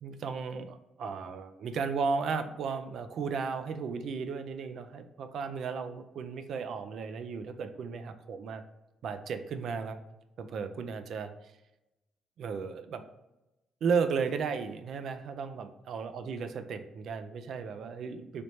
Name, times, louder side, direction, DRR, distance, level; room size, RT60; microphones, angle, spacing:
voice 1, 0.0-8.6 9.0-10.0 10.4-11.5 12.4-13.0 13.8-18.4, right 5 dB, 65° right, 9 dB, 0.3 m, -34 dB
3.3 x 3.0 x 2.6 m, 0.96 s
cardioid pair, 90°, 0 cm